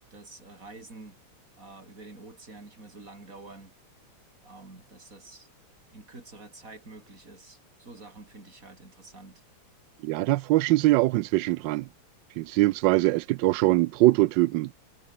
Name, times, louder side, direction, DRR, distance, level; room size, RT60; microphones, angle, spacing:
voice 1, 0.1-1.2 1.6-3.7 4.4-5.5 5.9-9.4, right 3 dB, 40° right, 5.1 m, -48 dB
voice 2, 10.0-11.9 12.4-14.7, right 18 dB, 75° right, 1.1 m, -22 dB
omnidirectional pair, 2.3 m